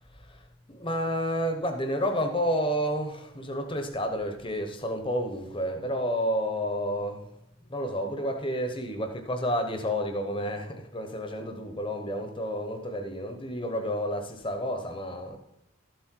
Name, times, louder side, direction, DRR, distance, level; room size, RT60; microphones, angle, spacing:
voice 1, 0.7-7.2 7.7-15.4, equal, 25° left, 6 dB, 1.2 m, -30 dB
13.0 x 7.9 x 4.6 m, 0.83 s
head